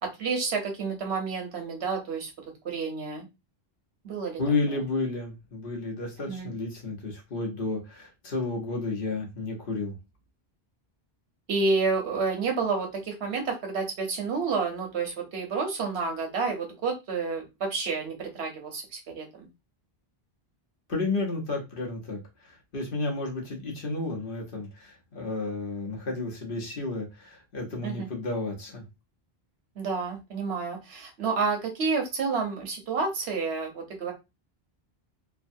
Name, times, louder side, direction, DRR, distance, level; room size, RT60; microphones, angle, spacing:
voice 1, 0.0-3.3 4.0-4.4 4.7-4.8 6.3-6.5 11.5-19.3 27.8-28.1 29.8-34.1, right 4 dB, 80° right, 3 dB, 1.2 m, -30 dB
voice 2, 4.4-10.0 20.9-28.8, left 3 dB, 60° left, 0 dB, 1.1 m, -32 dB
3.2 x 2.3 x 2.6 m, 0.24 s
omnidirectional pair, 1.1 m